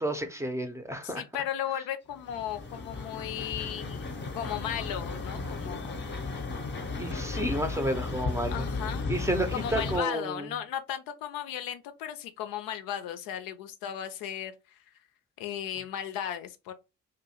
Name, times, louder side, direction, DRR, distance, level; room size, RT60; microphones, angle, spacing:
voice 1, 0.0-1.2 6.0-6.2 7.0-8.7 9.1-10.5, right 1 dB, 10° right, 0.6 m, -31 dB
voice 2, 1.0-6.0 8.5-9.1 9.5-14.8 15.4-16.7, left 10 dB, 65° left, 0.5 m, -36 dB
sound 1, 2.1-10.0, left 3 dB, 30° left, 0.8 m, -35 dB
2.6 x 2.4 x 2.7 m
hypercardioid pair, 45°, 38 cm